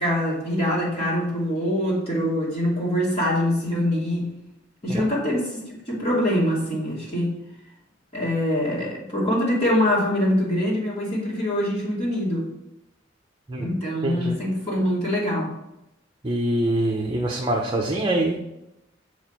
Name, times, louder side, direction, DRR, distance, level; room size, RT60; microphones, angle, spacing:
voice 1, 0.0-4.3 4.8-7.3 8.1-12.5 13.6-15.5, left 1 dB, 35° left, -6 dB, 2.6 m, -24 dB
voice 2, 14.0-14.3 16.2-18.4, right 1 dB, 25° right, 0 dB, 0.9 m, -24 dB
7.1 x 4.9 x 6.0 m, 0.86 s
head